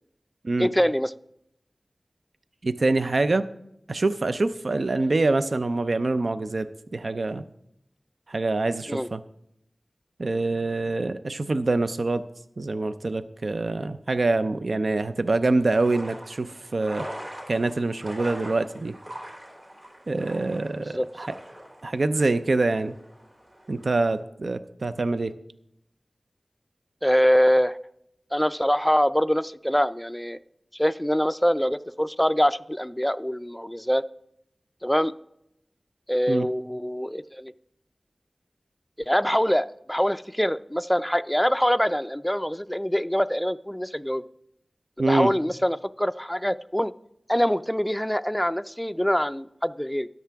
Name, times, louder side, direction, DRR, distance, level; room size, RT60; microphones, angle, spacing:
voice 1, 0.6-1.1 8.9-9.1 20.9-21.1 27.0-27.8 28.3-30.4 30.8-34.0 34.8-35.1 36.1-37.5 39.0-44.2 45.0-46.9 47.3-50.1, equal, 5° left, 13 dB, 0.4 m, -24 dB
voice 2, 2.6-3.5 3.9-7.4 8.3-9.2 10.2-12.2 12.6-17.1 17.5-18.9 20.1-21.3 21.8-23.0 23.7-25.3 36.3-36.5 45.0-45.3, right 2 dB, 70° right, 11 dB, 0.5 m, -25 dB
sound 1, 15.5-24.2, equal, 45° right, 3.1 m, -42 dB
13.5 x 10.5 x 3.5 m, 0.79 s
wide cardioid pair, 50°, 0 cm